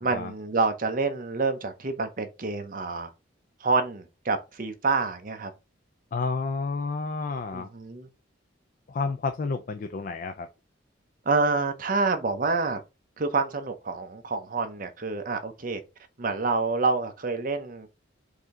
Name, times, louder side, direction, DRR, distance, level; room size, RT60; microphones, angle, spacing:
voice 1, 0.0-3.1 3.6-5.5 7.5-8.1 11.3-12.8 13.2-15.8 16.2-17.9, right 3 dB, 45° right, 0.7 m, -27 dB
voice 2, 6.1-7.7 8.9-10.5, left 4 dB, 45° left, 0.4 m, -30 dB
4.9 x 2.7 x 3.6 m
head